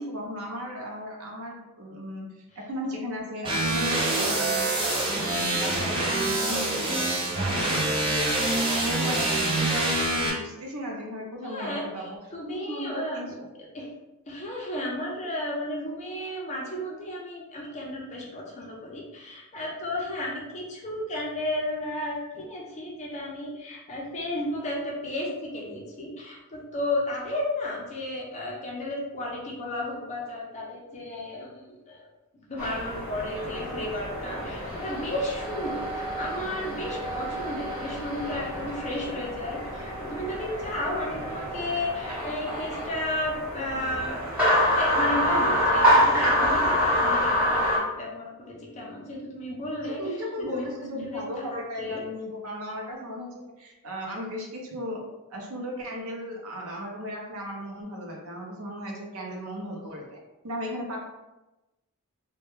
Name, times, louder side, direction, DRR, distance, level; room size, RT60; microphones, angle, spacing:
voice 1, 0.0-4.7 5.0-12.2 12.5-13.5 50.0-55.0 55.3-60.2 60.4-61.0, equal, 70° right, -1 dB, 0.6 m, -36 dB
sound 1, 3.4-10.3, right 2 dB, 25° right, 0.4 m, -26 dB
voice 2, 11.4-13.4 13.7-13.9 14.3-32.1 32.5-44.2 44.7-50.0 50.4-50.7 51.0-52.0, left 1 dB, 30° left, -3 dB, 0.5 m, -33 dB
sound 2, 32.6-47.8, equal, 5° right, 0.8 m, -27 dB
2.2 x 2.1 x 3.0 m, 1.0 s
head